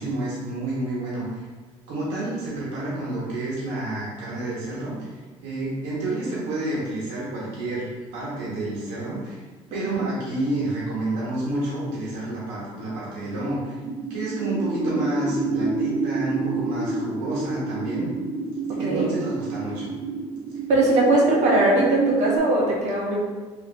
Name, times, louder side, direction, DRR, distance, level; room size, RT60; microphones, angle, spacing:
voice 1, 0.0-1.5 1.9-5.1 5.4-9.4 9.7-13.8 14.1-18.1 18.7-19.9, right 2 dB, 85° right, -7 dB, 1.2 m, -29 dB
voice 2, 9.7-10.0 14.8-14.9 15.3-15.4 18.8-19.1 20.7-23.1, right 2 dB, 60° right, -3 dB, 1.1 m, -20 dB
sound 1, 13.8-22.4, right 3 dB, 40° right, 1.0 m, -29 dB
3.4 x 2.8 x 2.7 m, 1.3 s
cardioid pair, 100°, 13 cm